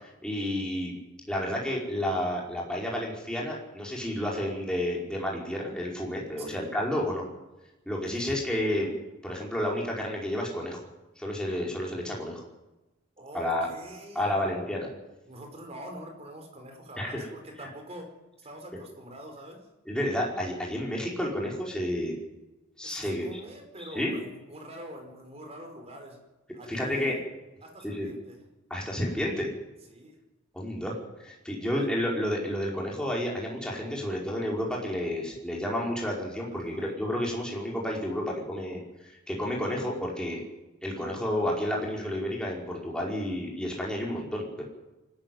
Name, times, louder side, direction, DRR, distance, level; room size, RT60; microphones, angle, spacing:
voice 1, 0.0-1.0 1.3-7.2 7.9-8.9 9.2-10.8 11.2-12.4 13.3-13.7 14.2-14.9 17.0-17.2 19.9-22.1 22.8-23.4 23.8-24.1 26.7-27.1 27.8-28.1 28.7-29.5 30.5-30.9 31.2-38.8 39.3-40.4 40.8-44.6, left 1 dB, 5° left, -3 dB, 5.1 m, -31 dB
voice 2, 13.2-14.5 15.3-18.1 18.4-19.6 22.8-26.2 26.5-27.2 27.6-28.4 29.9-30.2 36.5-36.9, right 1 dB, 30° right, 4 dB, 4.8 m, -45 dB
24.5 x 14.0 x 9.4 m, 1.0 s
head